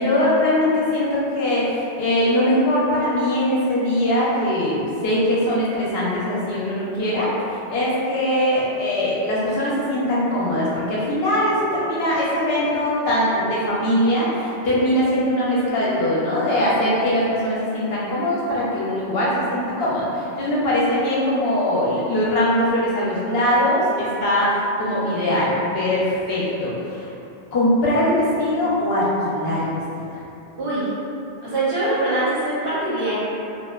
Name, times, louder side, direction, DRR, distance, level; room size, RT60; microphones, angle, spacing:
voice 1, 0.0-27.1 27.5-29.8 30.1-30.2, left 1 dB, 65° left, -7 dB, 0.8 m, -21 dB
voice 2, 30.6-30.9 31.4-33.1, right 2 dB, 60° right, -10 dB, 0.9 m, -23 dB
2.6 x 2.1 x 2.2 m, 2.7 s
omnidirectional pair, 1.1 m